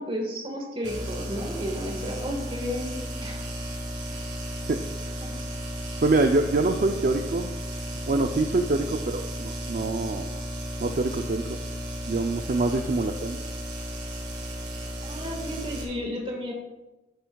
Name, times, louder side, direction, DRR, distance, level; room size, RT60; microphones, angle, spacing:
voice 1, 0.0-3.5 5.2-5.3 15.0-16.5, equal, 30° right, 1 dB, 1.6 m, -33 dB
sound 1, 0.8-15.8, equal, 65° right, 2.2 m, -34 dB
voice 2, 6.0-7.5 8.1-10.4 10.8-11.6 12.1-13.4, right 2 dB, 45° right, 5 dB, 0.4 m, -25 dB
13.0 x 7.9 x 2.3 m, 1.0 s
head